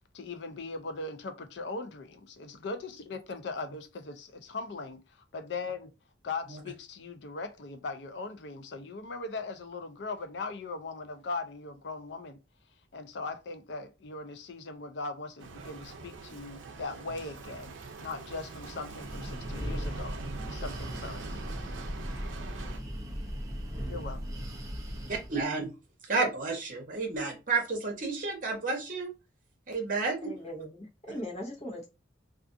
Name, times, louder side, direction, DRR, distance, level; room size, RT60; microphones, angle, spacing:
voice 1, 0.1-5.0 5.3-5.9 6.2-12.4 12.9-20.1 20.5-21.2 23.8-24.2, left 3 dB, 65° left, 0.5 m, -39 dB
Bicycle, 15.4-22.8, right 4 dB, 85° right, 0.5 m, -43 dB
Breathing, 18.9-25.4, equal, 20° right, 0.6 m, -38 dB
voice 2, 25.1-25.7 26.1-29.1 29.7-30.3, right 4 dB, 45° right, 0.9 m, -31 dB
voice 3, 30.2-31.9, equal, 35° left, 0.9 m, -39 dB
2.4 x 2.4 x 2.5 m
head